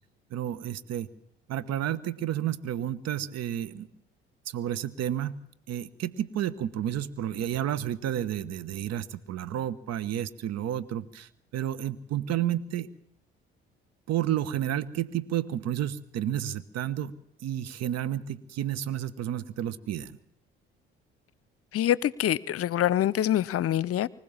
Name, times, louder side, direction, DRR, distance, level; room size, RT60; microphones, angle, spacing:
voice 1, 0.3-1.1 1.5-3.9 4.5-5.4 5.7-12.9 14.1-17.1 17.4-20.2, right 11 dB, 60° right, 1.3 m, -31 dB
voice 2, 21.7-24.1, left 12 dB, 50° left, 0.8 m, -25 dB
24.5 x 16.0 x 7.3 m
hypercardioid pair, 55°, 29 cm